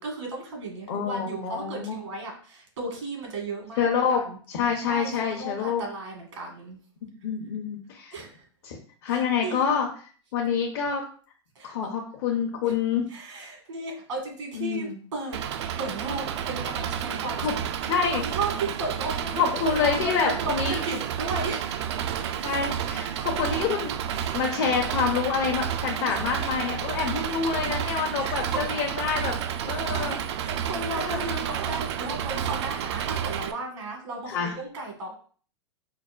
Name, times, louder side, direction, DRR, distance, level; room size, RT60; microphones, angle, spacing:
voice 1, 0.0-4.4 4.8-6.8 8.1-8.4 9.1-9.7 11.5-11.9 12.6-12.8 13.1-15.4 15.8-17.5 18.1-21.7 23.1-23.3 26.1-26.2 28.2-28.6 30.4-35.1, right 2 dB, 85° right, 1 dB, 1.4 m, -35 dB
voice 2, 0.9-2.0 3.8-4.2 4.5-5.8 7.2-8.1 8.6-8.8 9.0-9.9 10.3-11.0 11.6-13.1 14.5-14.9 17.4-17.5 17.8-18.2 19.4-20.8 22.4-23.9 24.3-29.3 29.6-30.2 31.0-31.4 34.3-34.5, left 6 dB, 55° left, -1 dB, 0.8 m, -27 dB
Engine, 15.3-33.5, right 9 dB, 70° right, 0.4 m, -30 dB
5.6 x 2.1 x 2.4 m, 0.43 s
hypercardioid pair, 110°, 15 cm